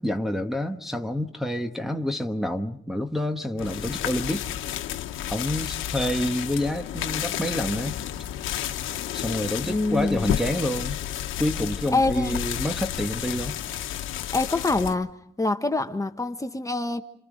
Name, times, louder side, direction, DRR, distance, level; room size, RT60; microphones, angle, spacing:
voice 1, 0.0-4.5 5.3-8.0 9.1-11.0 11.4-13.5, left 1 dB, ahead, 1.2 m, -28 dB
sound 1, 3.6-15.0, left 11 dB, 85° left, 1.1 m, -31 dB
voice 2, 9.7-10.3 11.9-12.4 14.3-17.0, left 2 dB, 15° left, 1.3 m, -25 dB
28.0 x 27.5 x 5.0 m
cardioid pair, 90°, 20 cm